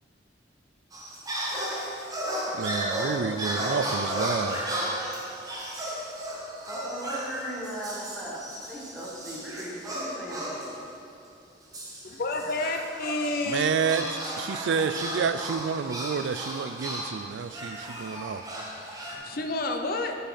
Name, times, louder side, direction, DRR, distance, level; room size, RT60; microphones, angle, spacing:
sound 1, 0.9-10.8 11.7-19.2, right 1 dB, 20° right, 1.0 m, -34 dB
voice 1, 2.5-4.6 13.4-14.0 14.4-18.4, right 6 dB, 80° right, 13 dB, 0.3 m, -29 dB
voice 2, 6.7-10.7, right 1 dB, 5° right, -6 dB, 1.5 m, -37 dB
voice 3, 12.0-13.7 19.1-20.2, left 2 dB, 55° left, 4 dB, 0.6 m, -30 dB
10.0 x 5.6 x 4.2 m, 2.6 s
head